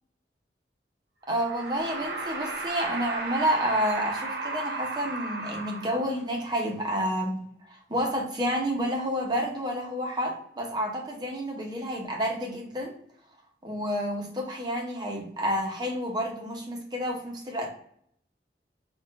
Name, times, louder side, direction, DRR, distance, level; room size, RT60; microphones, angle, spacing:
voice 1, 1.3-7.4 7.7-12.9 13.6-17.7, equal, 25° right, 2 dB, 0.5 m, -29 dB
sound 1, 1.3-6.3, right 2 dB, 65° right, 0.6 m, -34 dB
4.1 x 2.2 x 2.3 m, 0.67 s
head